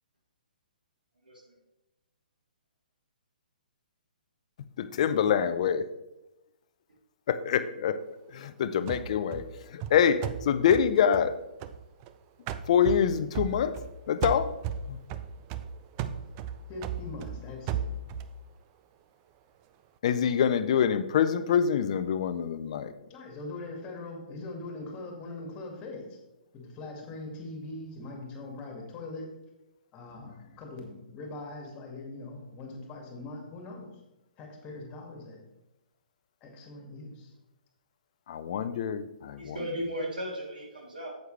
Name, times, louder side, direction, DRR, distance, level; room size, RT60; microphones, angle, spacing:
voice 1, 4.8-5.8 7.3-8.0 8.3-9.5 9.7-11.3 12.7-13.7 14.1-14.5 14.9-15.0 20.0-22.9 38.3-39.5, left 8 dB, 45° left, 13 dB, 0.6 m, -25 dB
sound 1, 8.9-12.1 12.5-13.9 14.2-18.4, right 7 dB, 30° right, 0.5 m, -36 dB
voice 2, 16.7-17.9 23.1-26.2 26.5-29.3 29.9-33.9 34.4-35.4 36.4-37.3, left 2 dB, 25° left, 1 dB, 2.3 m, -41 dB
voice 3, 39.4-41.1, equal, 75° right, -3 dB, 3.3 m, -35 dB
9.2 x 8.0 x 3.4 m, 0.95 s
figure-of-eight pair, 125°, 5 cm